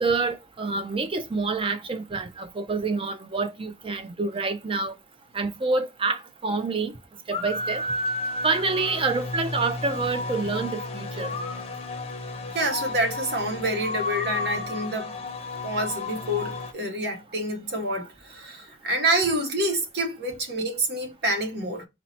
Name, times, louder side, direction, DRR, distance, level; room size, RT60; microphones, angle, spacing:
voice 1, 0.0-4.9 5.3-6.9 7.3-7.8 8.4-11.3, right 3 dB, 30° right, 0.5 m, -27 dB
sound 1, 7.3-16.7, left 2 dB, 35° left, 0.6 m, -32 dB
voice 2, 12.5-15.2 15.6-21.9, right 1 dB, 65° right, 1.0 m, -27 dB
4.4 x 2.1 x 4.0 m
head